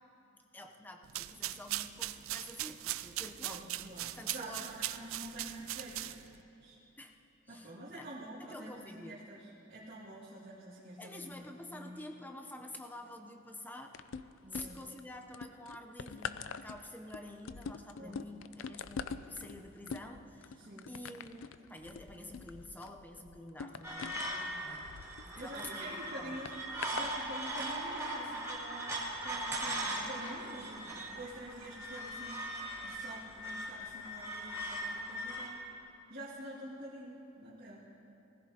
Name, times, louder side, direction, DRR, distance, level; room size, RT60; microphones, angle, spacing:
voice 1, 0.2-3.7 4.2-4.7 7.0-7.1 7.5-8.1 8.4-9.2 11.0-14.3 14.5-20.6 20.9-24.3 24.6-26.5, left 1 dB, 10° left, 4 dB, 0.7 m, -49 dB
sound 1, 1.0-6.4, right 15 dB, 80° right, 0.4 m, -40 dB
voice 2, 3.4-6.8 7.5-11.5 11.7-12.0 14.4-14.8 18.0-18.2 20.6-20.9 24.3-24.6 25.3-26.5 26.9-32.4 32.8-35.6 36.1-37.8, right 1 dB, 50° right, -11 dB, 2.3 m, -47 dB
sound 2, 13.9-15.0 15.3-25.7 26.5-27.1 27.9-28.0, left 6 dB, 70° left, 0.4 m, -44 dB
sound 3, 23.8-35.5, right 1 dB, 15° right, 1.6 m, -39 dB
20.5 x 15.0 x 2.9 m, 2.9 s
head